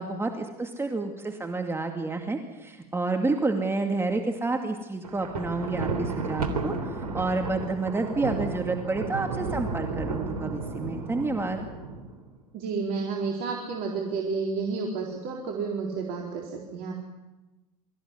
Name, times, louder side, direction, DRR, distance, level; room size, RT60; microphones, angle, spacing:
voice 1, 0.0-11.7, right 3 dB, 10° right, 3 dB, 2.4 m, -29 dB
Thunder, 5.0-12.3, right 3 dB, 85° right, 3.6 m, -33 dB
voice 2, 12.5-16.9, right 4 dB, 55° right, 0 dB, 4.1 m, -31 dB
25.0 x 15.0 x 9.8 m, 1.1 s
hypercardioid pair, 90°, 19 cm